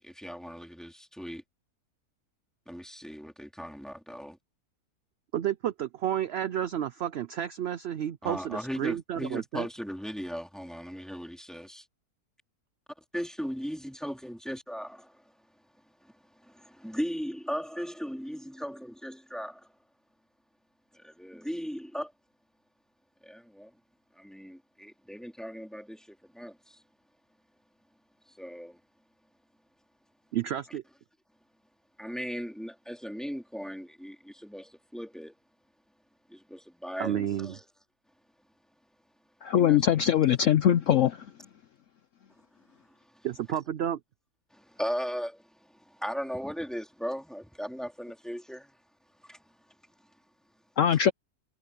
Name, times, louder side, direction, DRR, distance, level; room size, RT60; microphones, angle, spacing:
voice 1, 0.0-1.4 2.7-4.4 8.2-11.8 13.1-15.2 16.0-16.1 16.4-19.7 20.9-22.1 23.2-23.7 24.1-26.8 28.3-28.8 32.0-35.3 36.3-37.6 39.6-39.8 42.9-43.0 44.5-48.7 49.2-49.4, equal, ahead, 3.0 m, -37 dB
voice 2, 5.3-9.7 30.3-30.8 37.0-37.6 43.2-44.0, right 10 dB, 70° right, 0.6 m, -31 dB
voice 3, 39.4-41.2 50.8-51.1, left 9 dB, 65° left, 0.9 m, -22 dB
omnidirectional pair, 1.7 m